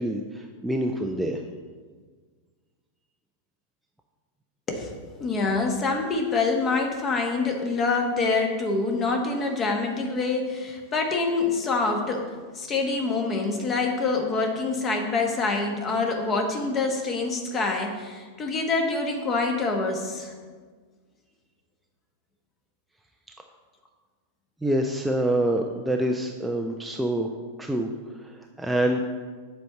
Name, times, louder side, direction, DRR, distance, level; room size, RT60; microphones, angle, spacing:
voice 1, 0.0-1.4 24.6-27.3 27.6-27.9 28.2-28.3 28.6-29.0, right 1 dB, 5° right, 2 dB, 0.5 m, -26 dB
voice 2, 4.7-20.3, left 3 dB, 25° left, 3 dB, 1.3 m, -26 dB
7.7 x 4.5 x 6.6 m, 1.5 s
figure-of-eight pair, 90°, 0 cm